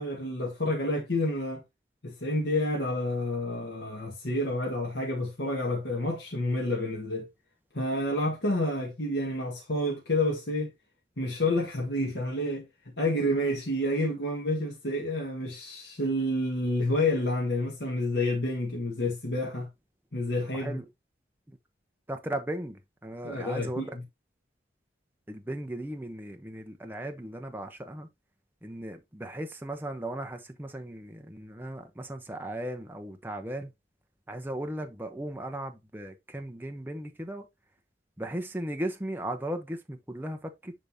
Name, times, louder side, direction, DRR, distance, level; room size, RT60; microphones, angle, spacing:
voice 1, 0.0-1.6 2.0-7.3 7.7-10.7 11.2-12.7 13.0-19.7 20.1-20.8 23.2-24.0, left 1 dB, 80° left, 1.5 m, -29 dB
voice 2, 20.5-20.8 22.1-23.9 25.3-28.1 28.6-33.7 34.3-37.4 38.2-40.7, right 1 dB, 10° right, 0.7 m, -37 dB
10.0 x 3.4 x 2.7 m
head